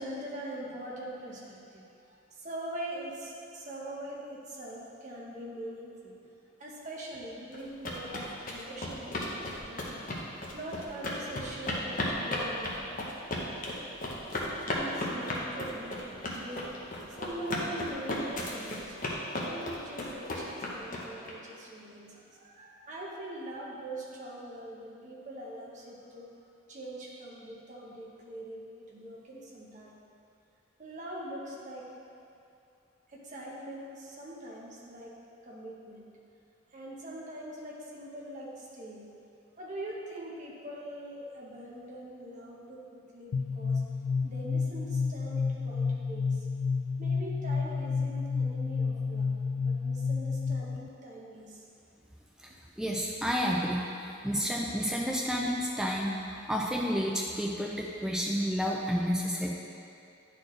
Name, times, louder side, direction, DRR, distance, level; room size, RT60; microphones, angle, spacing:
voice 1, 0.0-6.1 6.6-10.0 10.5-12.8 14.7-16.8 17.2-19.0 19.3-26.3 26.7-30.0 30.8-31.9 33.1-36.1 36.7-39.1 39.6-43.8 44.2-46.5 47.0-49.3 49.6-51.6, right 1 dB, 35° right, -4 dB, 1.0 m, -42 dB
sound 1, 7.5-21.3, left 1 dB, 40° left, 0.8 m, -35 dB
sound 2, 43.3-50.9, left 4 dB, 75° left, 0.3 m, -30 dB
voice 2, 52.8-59.5, equal, 5° right, -3 dB, 0.4 m, -30 dB
10.0 x 4.2 x 3.2 m, 2.5 s
head